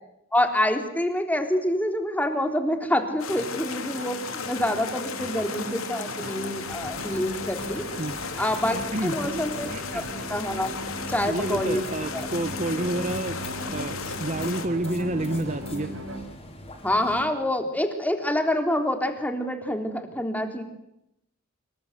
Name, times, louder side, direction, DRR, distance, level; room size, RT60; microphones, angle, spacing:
voice 1, 0.3-4.2 4.5-7.9 8.4-10.7 11.1-11.8 12.1-12.3 16.8-20.6, left 1 dB, 10° left, 6 dB, 3.8 m, -26 dB
sound 1, 3.2-14.7, left 5 dB, 75° left, 3.4 m, -35 dB
sound 2, 3.3-16.2, right 1 dB, 70° right, 5.5 m, -38 dB
sound 3, 6.6-17.3, left 1 dB, 30° left, 7.0 m, -44 dB
voice 2, 8.9-10.1 11.2-15.9, right 1 dB, 35° right, 11 dB, 1.3 m, -30 dB
27.0 x 24.5 x 8.2 m, 0.83 s
head